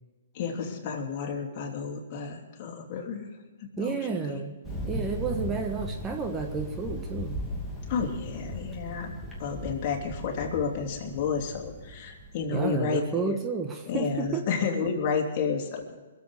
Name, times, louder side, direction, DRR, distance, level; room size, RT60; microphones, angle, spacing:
voice 1, 0.3-3.3 3.6-4.4 7.9-9.1 9.4-13.4 13.9-16.0, left 5 dB, 40° left, 1 dB, 3.1 m, -31 dB
voice 2, 3.8-4.5 4.9-7.4 12.5-14.4, right 5 dB, 20° right, 5 dB, 1.2 m, -31 dB
Thunder, 4.6-12.9, equal, ahead, 2.7 m, -37 dB
22.0 x 7.9 x 6.6 m, 1.3 s
hypercardioid pair, 140°, 0 cm